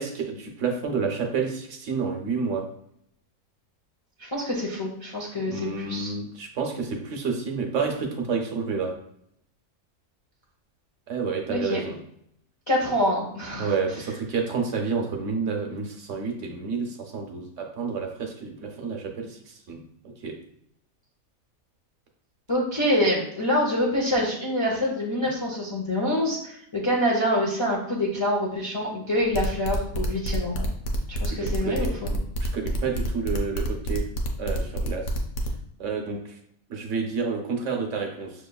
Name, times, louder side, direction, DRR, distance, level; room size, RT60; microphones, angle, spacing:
voice 1, 0.0-2.6 5.5-8.9 11.1-12.0 13.6-20.3 31.3-31.9 32.4-34.1 34.4-35.0 35.8-36.4 36.7-38.3, right 5 dB, 65° right, 2 dB, 1.0 m, -29 dB
voice 2, 4.2-6.1 11.5-11.8 12.7-13.7 22.5-30.7 31.1-32.2, left 1 dB, 35° left, -3 dB, 0.5 m, -26 dB
sound 1, 29.2-35.5, right 1 dB, 80° left, 1.1 m, -29 dB
6.2 x 3.0 x 2.3 m, 0.70 s
omnidirectional pair, 1.5 m